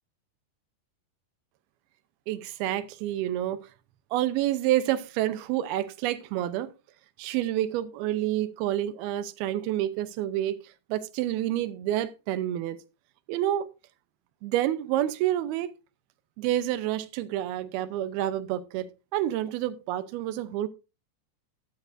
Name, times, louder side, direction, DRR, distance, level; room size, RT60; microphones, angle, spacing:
voice 1, 2.3-3.6 4.1-6.7 7.2-10.6 10.9-12.8 13.3-13.7 14.4-15.7 16.4-18.9 19.1-20.7, right 13 dB, 80° right, 2.6 m, -28 dB
12.5 x 11.5 x 2.6 m
omnidirectional pair, 4.5 m